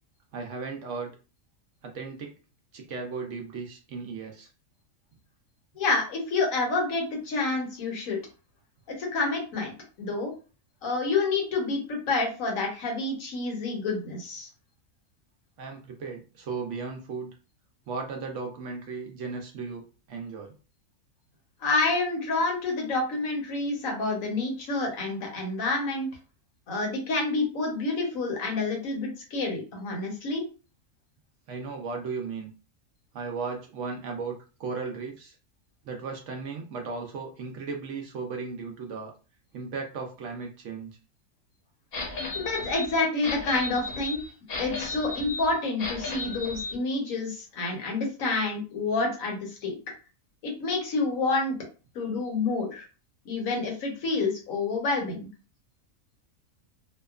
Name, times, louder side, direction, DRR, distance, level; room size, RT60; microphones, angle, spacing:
voice 1, 0.3-1.1 1.8-2.3 2.7-4.5 15.6-17.3 17.9-20.5 31.5-32.5 33.1-35.4 35.8-39.1 39.5-41.0, right 4 dB, 65° right, 2 dB, 0.8 m, -36 dB
voice 2, 5.8-8.2 8.9-9.7 10.0-10.3 10.8-14.5 21.6-26.1 26.7-30.4 42.3-44.2 44.6-49.8 50.4-51.6 51.9-52.8 53.2-55.3, left 3 dB, 70° left, 1 dB, 1.2 m, -28 dB
sound 1, 41.9-46.7, left 3 dB, 50° left, 0.9 m, -35 dB
2.8 x 2.2 x 2.3 m, 0.34 s
omnidirectional pair, 1.5 m